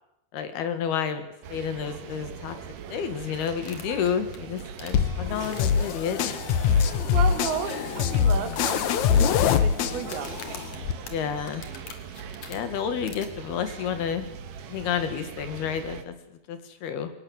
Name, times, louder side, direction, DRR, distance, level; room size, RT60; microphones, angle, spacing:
voice 1, 0.3-2.6 2.9-6.4 7.7-8.0 11.1-11.7 12.5-14.3 14.7-16.2 16.5-17.1, left 7 dB, 65° left, 9 dB, 3.6 m, -30 dB
sound 1, 1.4-16.0, right 7 dB, 60° right, 2.6 m, -41 dB
sound 2, 3.6-5.9 6.5-6.9 7.2-7.3 7.8-7.9 8.5-9.3 10.0-12.6 13.1-13.3, left 6 dB, 50° left, 3.0 m, -44 dB
sound 3, 4.9-10.9, left 7 dB, 85° left, 1.6 m, -24 dB
voice 2, 7.1-8.8 9.1-10.4, right 8 dB, 85° right, 8 dB, 4.2 m, -33 dB
23.5 x 19.0 x 8.1 m, 0.86 s
omnidirectional pair, 5.0 m